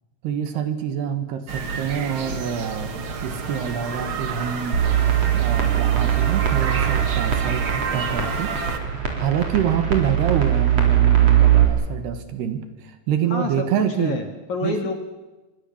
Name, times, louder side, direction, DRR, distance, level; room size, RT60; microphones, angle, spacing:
voice 1, 0.2-2.9 3.2-4.8 5.3-8.5 9.2-14.2 14.6-14.8, right 8 dB, 65° right, 9 dB, 3.4 m, -26 dB
sound 1, 1.5-8.8, right 5 dB, 90° right, 1.1 m, -29 dB
sound 2, 4.7-11.6, right 10 dB, 35° right, 4.7 m, -20 dB
voice 2, 13.3-14.9, left 4 dB, 50° left, 5 dB, 2.6 m, -28 dB
26.5 x 24.0 x 7.3 m, 1.1 s
omnidirectional pair, 5.4 m